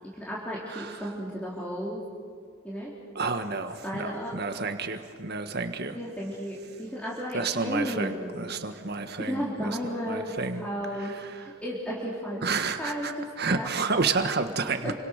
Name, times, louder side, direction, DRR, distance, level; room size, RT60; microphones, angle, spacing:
voice 1, 0.0-2.0 2.6-2.9 3.8-4.3 5.9-8.4 9.2-12.5 12.8-13.7 14.8-14.9, equal, 5° left, -6 dB, 3.8 m, -34 dB
voice 2, 0.7-1.1 3.1-6.0 7.3-10.7 11.0-11.5 12.4-14.9, right 4 dB, 50° right, 7 dB, 1.6 m, -30 dB
30.0 x 25.5 x 6.7 m, 2.1 s
head